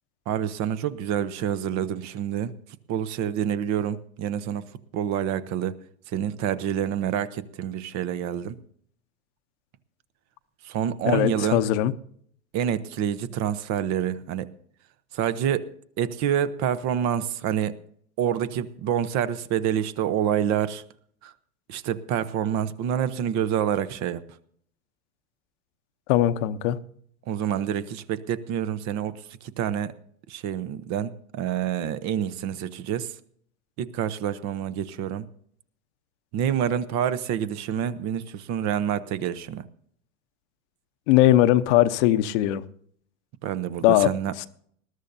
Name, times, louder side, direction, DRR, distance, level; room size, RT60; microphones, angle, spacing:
voice 1, 0.3-2.5 2.9-4.6 4.9-5.7 6.1-8.6 10.6-11.7 12.5-14.5 15.1-15.7 16.0-17.8 18.2-20.8 21.2-21.3 21.7-24.2 27.3-29.1 29.6-29.9 30.3-33.1 33.8-35.3 36.3-39.6 43.4-44.3, right 9 dB, 40° right, 14 dB, 0.9 m, -27 dB
voice 2, 11.0-11.9 26.1-26.8 41.1-42.6 43.8-44.1 44.4-44.5, left 14 dB, 50° left, 12 dB, 0.9 m, -20 dB
20.5 x 13.0 x 2.7 m, 0.63 s
hypercardioid pair, 115°, 44 cm